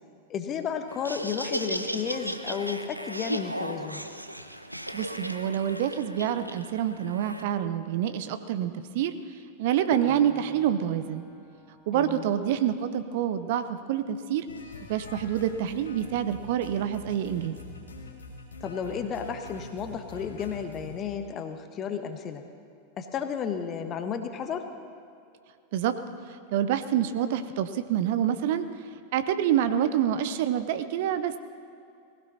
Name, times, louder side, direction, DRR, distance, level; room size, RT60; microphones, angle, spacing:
voice 1, 0.3-4.0 11.9-12.3 18.6-22.4 23.0-24.7, left 7 dB, 30° left, 7 dB, 1.3 m, -33 dB
Laughter, 0.9-7.4, equal, 90° right, 0.6 m, -36 dB
voice 2, 4.9-9.1 9.6-11.2 11.9-14.5 14.9-17.5 25.7-25.9 26.5-28.7 29.1-31.4, right 10 dB, 50° right, 11 dB, 0.7 m, -27 dB
Piano, 9.9-15.1 15.6-15.7 16.3-16.8, equal, 10° left, 2.0 m, -48 dB
sound 1, 14.5-21.1, left 3 dB, 75° left, 2.3 m, -45 dB
19.0 x 16.5 x 4.2 m, 2.5 s
figure-of-eight pair, 90°, 0 cm